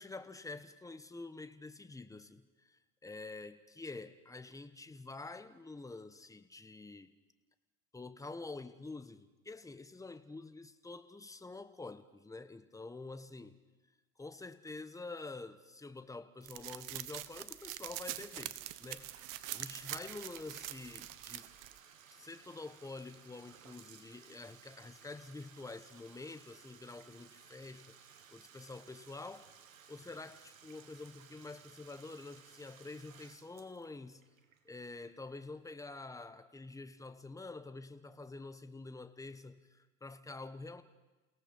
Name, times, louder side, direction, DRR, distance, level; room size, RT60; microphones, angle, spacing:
voice 1, 0.0-7.1 7.9-13.6 14.2-19.1 19.5-21.5 22.1-28.0 28.3-29.5 29.9-34.2 34.6-40.8, left 3 dB, 10° left, 11 dB, 1.2 m, -47 dB
sound 1, 16.5-21.8, right 15 dB, 50° right, 1.2 m, -44 dB
Bathtub (filling or washing), 18.8-35.5, right 8 dB, 85° right, 1.7 m, -60 dB
29.0 x 17.5 x 5.6 m, 1.2 s
hypercardioid pair, 85°, 39 cm